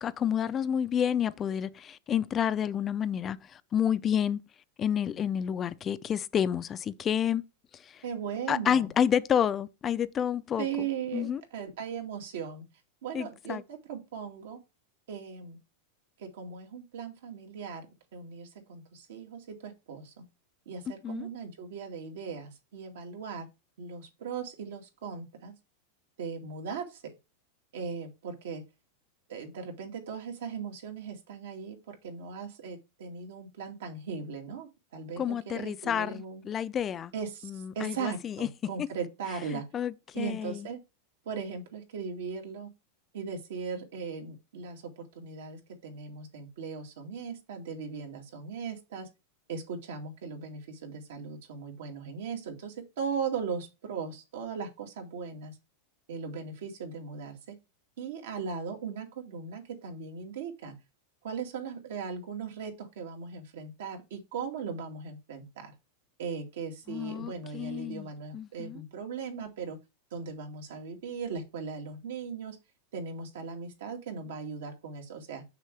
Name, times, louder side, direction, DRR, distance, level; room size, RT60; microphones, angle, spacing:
voice 1, 0.0-4.4 4.8-7.4 7.7-8.0 8.5-10.9 11.1-11.4 13.1-13.6 21.0-21.3 35.2-37.1 37.4-38.5 39.5-40.7 66.9-68.1 68.3-68.8, left 9 dB, 20° left, 0.4 m, -30 dB
voice 2, 8.0-8.9 10.6-12.7 13.0-14.6 15.1-15.6 16.2-17.9 18.1-20.3 20.7-23.5 23.8-25.5 26.2-27.1 27.7-28.6 29.3-36.5 37.1-39.7 40.1-40.8 41.3-42.7 43.1-49.1 49.5-55.6 56.1-57.6 58.0-60.8 61.2-65.7 66.2-69.8 70.1-72.6 72.9-75.4, right 6 dB, 80° right, 2.3 m, -38 dB
6.6 x 6.3 x 3.3 m
supercardioid pair, 155°, 0 cm